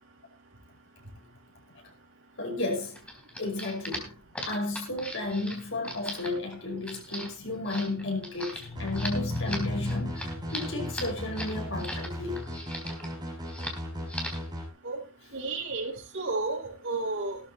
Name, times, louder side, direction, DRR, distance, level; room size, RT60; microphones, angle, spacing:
voice 1, 2.4-3.0 3.4-4.2 4.5-12.5, left 2 dB, 65° left, 5.7 m, -32 dB
sound 1, 2.9-12.1 12.4-13.1 13.5-13.8 14.1-14.5, left 1 dB, 5° left, 3.6 m, -39 dB
sound 2, 8.8-14.7, equal, 20° right, 6.4 m, -37 dB
voice 2, 15.3-17.4, right 3 dB, 65° right, 5.1 m, -32 dB
17.0 x 13.0 x 3.0 m
head